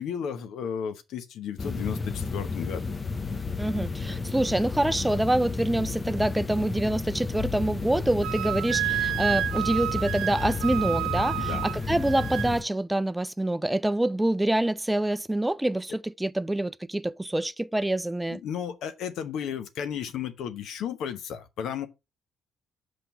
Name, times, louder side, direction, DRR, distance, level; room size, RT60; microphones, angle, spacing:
voice 1, 0.0-3.0 4.0-4.2 11.4-11.6 18.3-21.9, left 8 dB, 70° left, 0.9 m, -34 dB
sound 1, 1.6-12.6, left 4 dB, 35° left, 0.8 m, -32 dB
voice 2, 3.6-18.4, right 1 dB, 10° right, 0.4 m, -26 dB
Wind instrument woodwind instrument, 8.2-12.5, right 14 dB, 75° right, 0.4 m, -30 dB
5.9 x 5.2 x 5.4 m
hypercardioid pair, 45°, 0 cm